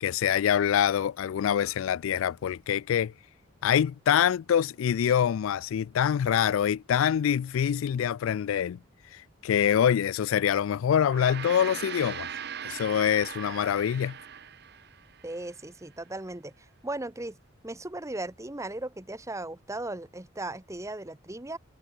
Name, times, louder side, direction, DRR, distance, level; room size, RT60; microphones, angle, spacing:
voice 1, 0.0-3.1 3.6-8.8 9.1-12.3 12.6-14.2, left 9 dB, 75° left, 0.3 m, -25 dB
Gong, 10.9-15.5, right 8 dB, 55° right, 1.3 m, -40 dB
voice 2, 15.2-16.5 16.8-17.4 17.6-21.6, right 2 dB, 15° right, 1.0 m, -37 dB
head